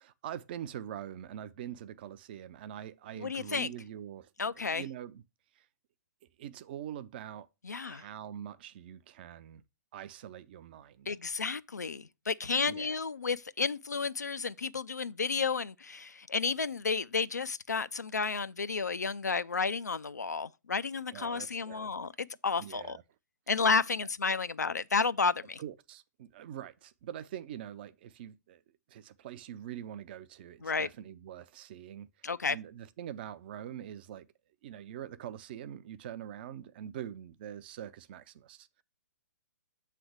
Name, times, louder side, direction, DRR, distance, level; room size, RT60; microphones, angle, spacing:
voice 1, 0.0-5.2 5.5-5.7 6.4-7.5 7.7-9.6 9.9-11.1 12.7-12.9 21.1-22.1 22.6-23.0 25.6-28.6 28.9-34.3 34.6-38.8, right 10 dB, 35° right, 0.5 m, -44 dB
voice 2, 3.2-3.7 4.4-4.8 7.7-8.0 11.1-23.0 23.5-25.6 30.6-30.9 32.2-32.6, left 5 dB, 70° left, 0.4 m, -32 dB
7.6 x 3.3 x 6.2 m
figure-of-eight pair, 125°, 9 cm